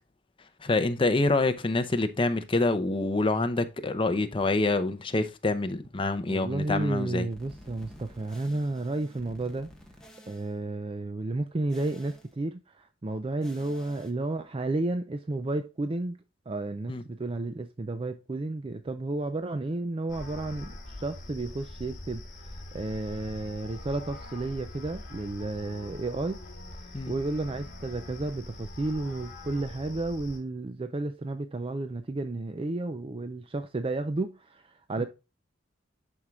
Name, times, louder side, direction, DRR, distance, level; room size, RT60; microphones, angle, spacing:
voice 1, 0.6-7.3 16.9-17.0 26.9-27.1 35.0-35.1, left 2 dB, 25° left, 0.6 m, -26 dB
voice 2, 6.3-9.7 10.3-16.2 16.5-26.4 26.9-35.1, right 2 dB, 30° right, 0.4 m, -32 dB
sound 1, 7.3-10.5 11.7-12.3 13.4-14.1, equal, 5° left, 1.2 m, -51 dB
sound 2, 20.1-30.4, left 1 dB, 45° left, 2.2 m, -43 dB
11.0 x 4.6 x 2.3 m
head